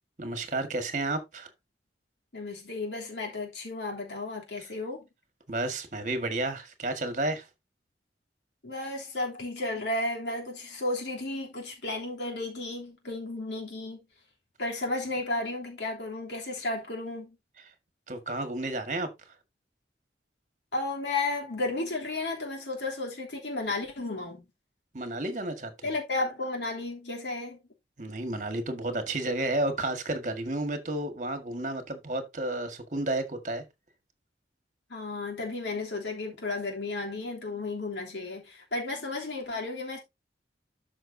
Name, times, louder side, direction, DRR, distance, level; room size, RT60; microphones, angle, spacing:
voice 1, 0.2-1.5 5.5-7.4 18.1-19.1 24.9-25.9 28.0-33.6, right 2 dB, 45° right, 1.7 m, -31 dB
voice 2, 2.3-5.0 8.6-14.0 14.6-17.4 20.7-24.5 25.8-27.6 34.9-40.0, left 2 dB, 85° left, 3.1 m, -33 dB
12.5 x 5.7 x 2.7 m
head